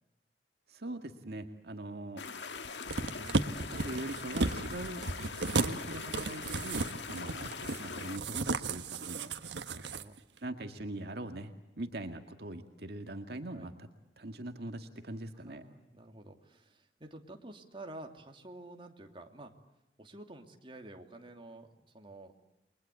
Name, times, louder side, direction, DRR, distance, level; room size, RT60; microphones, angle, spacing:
voice 1, 0.7-2.2 3.1-5.0 5.6-7.5 7.8-9.3 10.4-11.5 11.8-13.7 14.2-15.6, right 1 dB, 65° right, 6 dB, 2.0 m, -42 dB
sound 1, 2.2-8.2, left 5 dB, 90° left, 1.7 m, -42 dB
sound 2, 2.9-10.0 10.4-10.5, right 3 dB, 90° right, 1.5 m, -34 dB
voice 2, 9.7-10.2 10.7-10.9 13.5-13.7 15.4-19.5 20.0-22.3, right 2 dB, 30° right, 3 dB, 2.9 m, -50 dB
30.0 x 23.0 x 8.3 m, 0.94 s
head